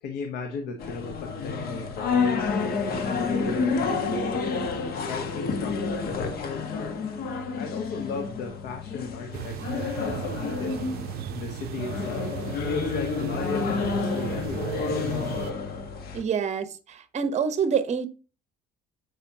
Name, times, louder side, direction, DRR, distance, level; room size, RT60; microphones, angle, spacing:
voice 1, 0.0-2.8 3.1-4.6 5.1-7.1 7.6-10.8 11.3-12.4 12.7-14.9, left 4 dB, 85° left, 1.1 m, -36 dB
sound 1, 0.8-16.2, left 5 dB, 65° left, 1.4 m, -29 dB
sound 2, 9.3-15.5, right 12 dB, 70° right, 0.5 m, -36 dB
voice 2, 16.1-18.1, right 7 dB, 40° right, 0.9 m, -26 dB
7.3 x 5.3 x 2.8 m
cardioid pair, 110°, 17 cm